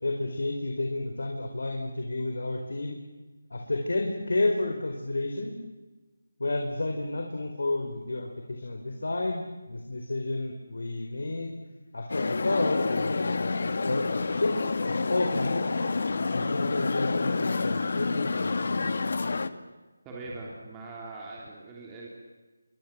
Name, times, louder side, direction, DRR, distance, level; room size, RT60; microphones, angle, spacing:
voice 1, 0.0-3.0 3.5-5.6 6.4-11.5 11.9-14.6 14.9-15.7 16.3-19.0 19.3-19.4, left 2 dB, 75° left, 3 dB, 4.4 m, -31 dB
sound 1, 12.1-19.5, left 3 dB, 55° left, 1.7 m, -28 dB
voice 2, 20.0-22.1, right 3 dB, 10° right, -4 dB, 3.4 m, -42 dB
28.0 x 24.5 x 7.7 m, 1.2 s
figure-of-eight pair, 165°, 0 cm